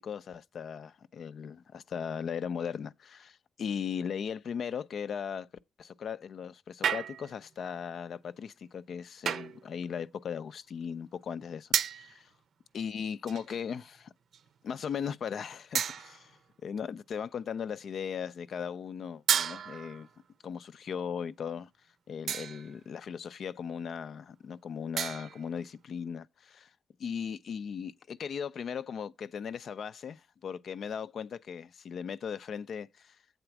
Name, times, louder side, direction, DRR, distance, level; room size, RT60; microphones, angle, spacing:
voice 1, 0.0-5.5 5.8-12.3 12.7-14.1 14.6-20.1 20.4-21.7 22.1-26.7 27.0-33.2, left 7 dB, 60° left, 0.4 m, -38 dB
sound 1, 6.8-7.4 9.3-9.7 11.7-12.2 13.3-13.7 14.3-14.5 15.7-16.3 19.3-20.1 22.3-22.8 25.0-25.5, right 8 dB, 70° right, 0.6 m, -32 dB
7.9 x 4.3 x 5.9 m
wide cardioid pair, 175°, 0 cm